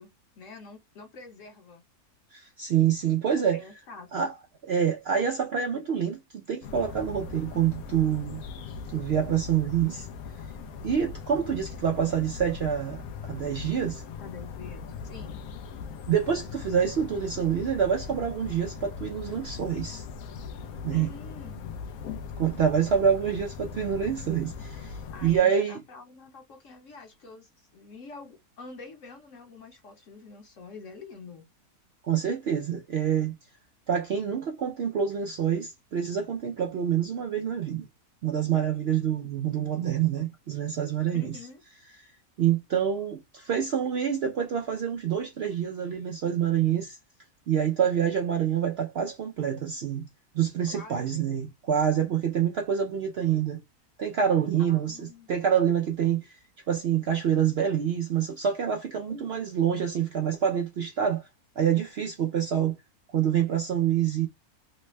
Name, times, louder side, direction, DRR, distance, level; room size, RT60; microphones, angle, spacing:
voice 1, 0.0-1.8 3.5-4.3 14.2-15.4 20.9-21.9 25.1-31.5 41.1-41.6 50.7-51.3 54.6-55.3 59.1-59.4, left 4 dB, 60° left, 1.3 m, -46 dB
voice 2, 2.3-3.6 4.1-4.3 4.6-8.4 8.9-10.1 10.8-14.0 16.1-20.1 20.8-21.1 22.4-25.8 32.0-33.3 33.9-37.9 38.2-41.3 42.4-47.0 47.5-50.1 50.3-53.6 54.0-56.4 56.7-61.3 61.6-62.8 63.1-64.3, right 8 dB, 70° right, 0.6 m, -26 dB
sound 1, 6.6-25.4, left 6 dB, 75° left, 1.0 m, -40 dB
3.3 x 2.1 x 3.1 m
omnidirectional pair, 1.6 m